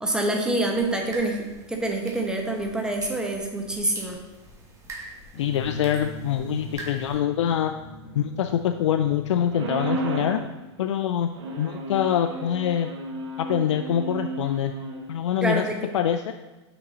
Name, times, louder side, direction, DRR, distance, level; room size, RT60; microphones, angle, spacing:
voice 1, 0.0-4.2 15.4-15.8, right 2 dB, 5° right, 1 dB, 1.1 m, -26 dB
sound 1, 0.6-7.2, right 2 dB, 20° right, 1.8 m, -44 dB
sound 2, 5.3-10.7, left 3 dB, 40° left, 1.8 m, -43 dB
voice 2, 5.4-7.7 8.2-10.4 10.8-11.3 11.6-12.9 13.4-14.7 15.1-15.6 15.9-16.3, left 9 dB, 80° left, 7 dB, 0.4 m, -24 dB
sound 3, 9.5-10.4 11.3-15.0, right 3 dB, 80° right, 1.5 m, -33 dB
6.0 x 5.9 x 4.1 m, 1.1 s
hypercardioid pair, 125°, 15 cm